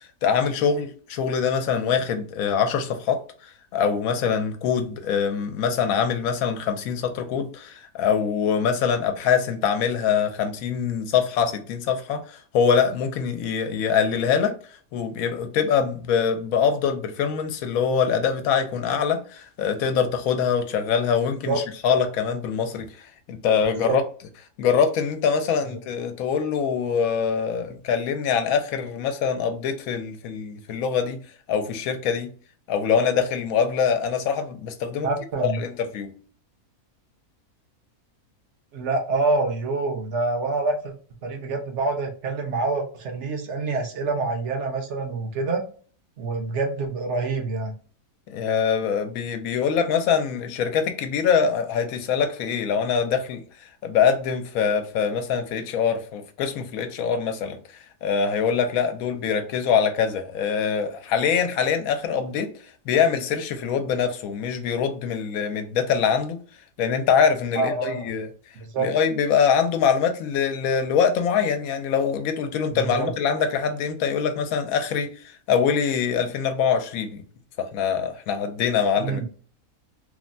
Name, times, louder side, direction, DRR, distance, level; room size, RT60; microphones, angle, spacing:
voice 1, 0.2-14.5 14.9-24.0 24.6-31.2 31.5-32.3 32.7-35.1 35.4-36.1 48.3-53.4 53.8-57.6 58.0-62.5 62.9-66.4 66.8-68.3 68.8-75.1 75.5-77.2 77.6-79.3, left 7 dB, 75° left, 1.0 m, -24 dB
voice 2, 35.0-35.6 38.7-40.9 41.2-45.6 46.2-47.7 67.6-68.1 68.5-68.9 72.7-73.1 79.0-79.3, right 3 dB, 60° right, 1.0 m, -26 dB
3.2 x 2.1 x 2.5 m
omnidirectional pair, 1.5 m